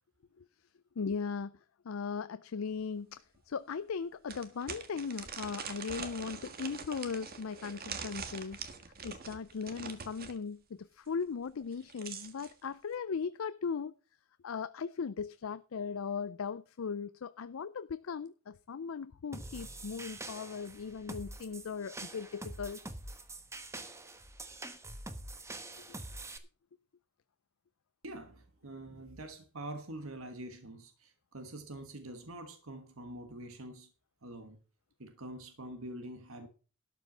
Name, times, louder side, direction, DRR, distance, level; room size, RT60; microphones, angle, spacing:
voice 1, 1.0-1.5 1.8-8.6 9.0-13.9 14.4-22.8, left 5 dB, 75° left, 0.5 m, -38 dB
sound 1, 2.8-2.9 3.3-3.4 4.3-10.4 11.6-12.5, right 6 dB, 45° right, 1.6 m, -44 dB
sound 2, 19.3-26.4, right 2 dB, 15° right, 1.1 m, -45 dB
voice 2, 28.0-33.9 34.2-34.6 35.0-36.5, right 1 dB, 85° right, 1.4 m, -45 dB
12.5 x 5.6 x 7.3 m
head